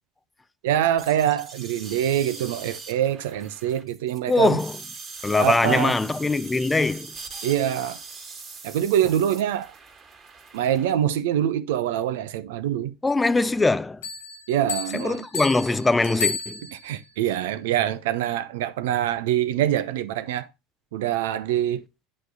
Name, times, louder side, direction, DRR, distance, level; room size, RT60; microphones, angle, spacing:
voice 1, 0.6-4.6 5.4-6.0 7.4-8.0 8.6-9.7 10.5-12.9 14.5-15.3 16.7-20.5 20.9-21.8, right 11 dB, 80° right, 0.6 m, -24 dB
sound 1, 1.0-10.9, right 4 dB, 35° right, 2.3 m, -42 dB
voice 2, 4.3-4.7 5.2-7.1 13.0-14.0 14.9-16.6, left 3 dB, 15° left, 0.4 m, -22 dB
Bell, 14.0-17.1, left 5 dB, 85° left, 2.5 m, -32 dB
9.1 x 3.2 x 4.8 m
hypercardioid pair, 85°, 0 cm